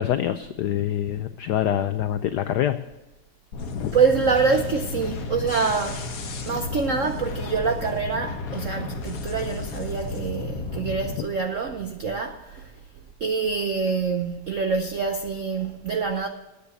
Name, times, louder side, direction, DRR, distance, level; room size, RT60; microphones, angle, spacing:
voice 1, 0.0-2.8 3.7-3.9, left 11 dB, 85° left, 0.9 m, -25 dB
sound 1, 3.5-11.2, left 3 dB, 50° left, 1.4 m, -33 dB
voice 2, 3.9-6.1 6.5-12.7 13.2-16.3, right 5 dB, 75° right, 0.7 m, -25 dB
9.6 x 8.4 x 8.3 m
omnidirectional pair, 2.4 m